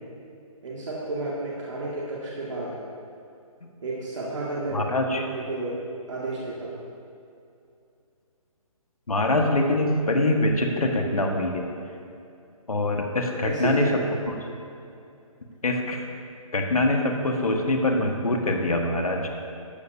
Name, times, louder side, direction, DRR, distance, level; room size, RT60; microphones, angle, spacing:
voice 1, 0.6-2.8 3.8-4.8 5.2-5.8 6.1-6.8 13.4-14.1, right 2 dB, 55° right, -6 dB, 2.2 m, -31 dB
voice 2, 4.7-5.2 9.1-11.7 12.7-13.9 14.3-14.4 15.6-16.0 16.5-19.3, left 2 dB, 80° left, 2 dB, 1.6 m, -24 dB
14.0 x 12.0 x 2.8 m, 2.6 s
figure-of-eight pair, 145°, 18 cm